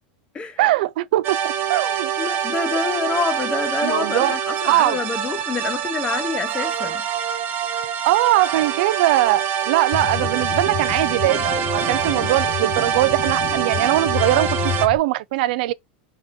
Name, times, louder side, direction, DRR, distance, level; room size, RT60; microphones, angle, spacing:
voice 1, 0.6-2.1 3.8-4.3 4.7-5.0 8.0-15.7, right 16 dB, 70° right, 0.3 m, -21 dB
sound 1, 1.2-14.9, right 8 dB, 35° right, 0.7 m, -25 dB
voice 2, 2.2-7.0 10.3-10.5, left 5 dB, 20° left, 0.8 m, -27 dB
sound 2, 9.9-15.0, left 12 dB, 45° left, 0.4 m, -30 dB
3.6 x 3.5 x 3.6 m
supercardioid pair, 130°, 5 cm